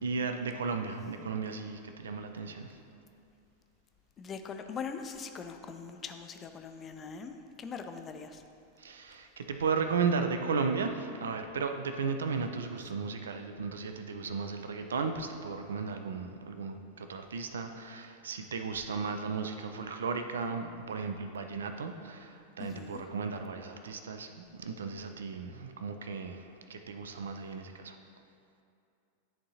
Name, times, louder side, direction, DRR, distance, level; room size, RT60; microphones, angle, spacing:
voice 1, 0.0-2.7 8.8-28.0, right 5 dB, 65° right, 6 dB, 0.4 m, -35 dB
voice 2, 4.2-8.4 22.6-23.0, left 5 dB, 25° left, 7 dB, 0.4 m, -42 dB
11.0 x 3.7 x 2.8 m, 2.5 s
figure-of-eight pair, 90°, 0 cm